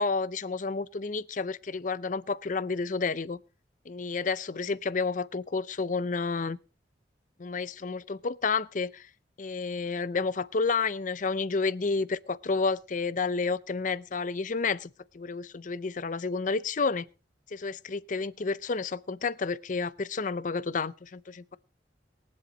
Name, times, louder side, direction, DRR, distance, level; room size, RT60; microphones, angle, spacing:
voice 1, 0.0-3.4 3.9-6.6 7.4-9.1 9.4-17.1 17.5-21.6, left 4 dB, 45° left, 0.6 m, -30 dB
22.5 x 7.8 x 3.9 m
head